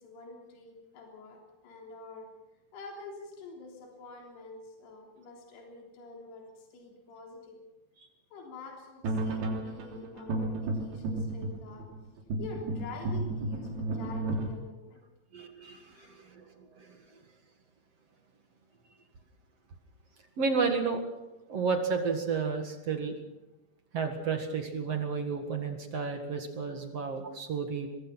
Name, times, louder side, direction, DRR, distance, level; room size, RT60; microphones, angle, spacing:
voice 1, 0.0-2.3 2.7-7.6 8.3-11.9 12.4-15.0 15.8-16.1, left 3 dB, 70° left, 1 dB, 5.4 m, -47 dB
sound 1, 9.0-14.5, right 2 dB, 65° right, 5.1 m, -33 dB
voice 2, 15.3-16.4 16.8-16.9 20.4-21.1 21.5-23.2 23.9-27.9, right 5 dB, 50° right, 5 dB, 2.2 m, -32 dB
23.5 x 21.0 x 5.9 m, 1.0 s
omnidirectional pair, 4.9 m